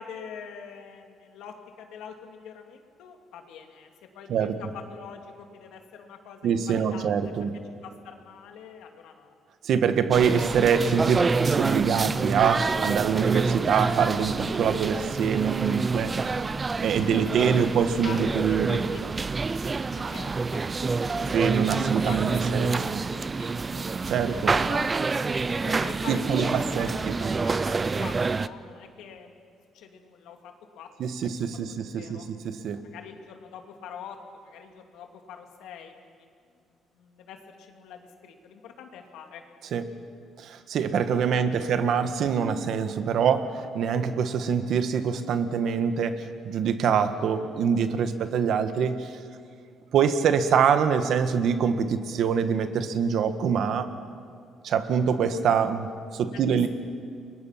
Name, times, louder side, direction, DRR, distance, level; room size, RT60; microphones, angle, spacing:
voice 1, 0.0-7.2 7.8-9.3 17.2-17.3 18.0-18.2 18.5-25.3 25.6-29.3 29.7-32.2 32.8-34.2 34.4-36.1 36.9-39.4 41.1-41.7 56.3-56.4, left 7 dB, 85° left, 4 dB, 2.7 m, -45 dB
voice 2, 6.4-7.6 9.6-16.4 16.8-18.8 21.3-23.0 24.1-24.5 26.1-27.1 31.0-32.9 39.7-40.0 40.4-49.2 49.9-53.9 54.6-56.7, right 7 dB, 70° right, 9 dB, 1.6 m, -25 dB
sound 1, 10.1-28.5, right 4 dB, 30° right, 0.6 m, -27 dB
29.5 x 22.5 x 5.9 m, 2.2 s
cardioid pair, 105°, 0 cm